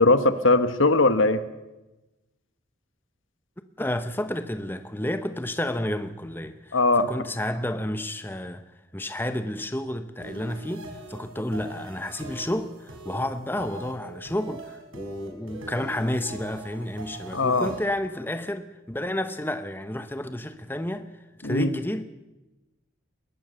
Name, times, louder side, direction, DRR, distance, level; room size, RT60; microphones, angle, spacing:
voice 1, 0.0-1.4 6.7-7.1 17.3-17.7 21.4-21.7, left 2 dB, 75° left, 1.4 m, -20 dB
voice 2, 3.8-8.6 8.9-21.1 21.4-22.0, left 1 dB, 10° left, 0.9 m, -31 dB
sound 1, 10.2-17.8, right 2 dB, 85° right, 5.5 m, -43 dB
22.0 x 19.5 x 6.9 m
head